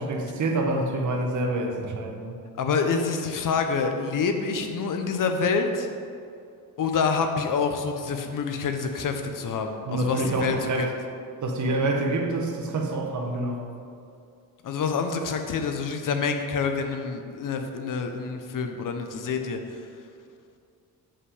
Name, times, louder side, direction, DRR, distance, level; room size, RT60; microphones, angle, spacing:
voice 1, 0.0-2.4 9.8-10.9 11.4-13.6, right 2 dB, 50° right, 2 dB, 1.1 m, -27 dB
voice 2, 2.6-5.9 6.8-10.9 14.6-19.6, left 5 dB, 60° left, 6 dB, 0.8 m, -27 dB
7.4 x 5.5 x 4.9 m, 2.4 s
cardioid pair, 120°, 37 cm